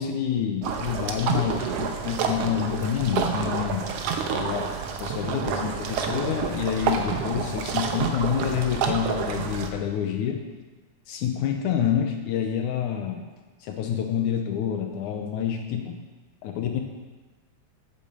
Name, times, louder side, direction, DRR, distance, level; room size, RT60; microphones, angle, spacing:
voice 1, 0.0-3.9 4.3-4.7 5.0-10.4 11.1-13.2 13.6-16.0 16.4-16.8, left 9 dB, 75° left, 4 dB, 2.1 m, -27 dB
sound 1, 0.6-9.7, right 6 dB, 70° right, 1.5 m, -29 dB
8.8 x 8.6 x 6.8 m, 1.3 s
omnidirectional pair, 3.7 m